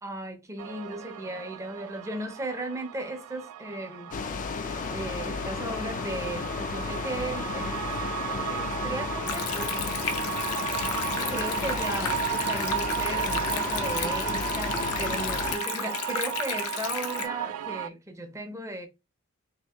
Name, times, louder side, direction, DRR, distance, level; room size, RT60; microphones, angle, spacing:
voice 1, 0.0-4.1 4.9-7.9 8.2-9.7 11.1-18.9, right 1 dB, 15° right, 0.5 m, -36 dB
sound 1, 0.6-17.9, right 10 dB, 85° right, 0.3 m, -34 dB
sound 2, 4.1-15.6, left 5 dB, 35° left, 0.3 m, -33 dB
Stream, 9.3-17.3, left 7 dB, 85° left, 0.6 m, -34 dB
3.0 x 2.8 x 3.2 m
head